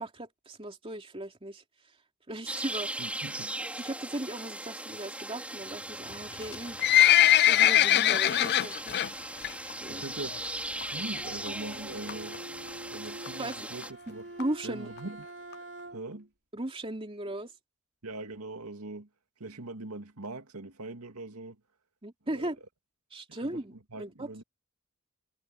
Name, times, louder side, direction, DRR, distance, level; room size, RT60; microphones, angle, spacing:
voice 1, 0.0-1.6 2.3-2.9 3.8-6.8 7.1-9.0 9.8-10.0 13.4-13.7 14.4-14.9 16.5-17.5 22.0-22.6 23.1-24.3, right 1 dB, 25° right, 2.9 m, -37 dB
sound 1, 2.5-13.9, right 1 dB, 5° right, 4.4 m, -39 dB
voice 2, 3.0-3.6 9.9-10.6 10.9-12.4 12.9-14.3 14.6-15.3 15.9-16.3 18.0-19.1 19.4-21.6 22.3-22.5 23.3-23.6 23.9-24.4, right 2 dB, 80° right, 2.3 m, -41 dB
Livestock farm animals working animals, 6.4-9.1 9.4-9.7 10.0-10.1 10.8-10.9 11.2-11.3 11.5-11.6 12.1-12.4 12.9-13.0 13.3-13.4 13.5-13.6 13.8-13.9 14.4-14.5 15.0-15.1 15.5-15.6, left 12 dB, 50° left, 0.4 m, -21 dB
Bowed string instrument, 11.9-16.3, right 2 dB, 55° right, 3.6 m, -46 dB
head